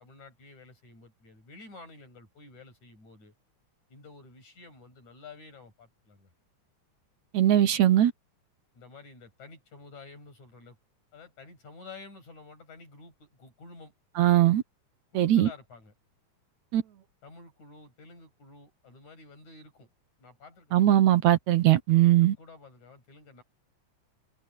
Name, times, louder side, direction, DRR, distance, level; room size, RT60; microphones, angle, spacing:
voice 1, 0.0-3.3 3.9-6.3 8.7-10.8 11.1-13.9 15.1-15.9 17.2-19.9 20.2-20.9 22.2-23.4, left 3 dB, 65° left, 9.4 m, -50 dB
voice 2, 7.3-8.1 14.2-14.6 15.2-15.5 16.7-16.8 20.7-22.4, right 13 dB, 70° right, 2.2 m, -20 dB
omnidirectional pair, 3.6 m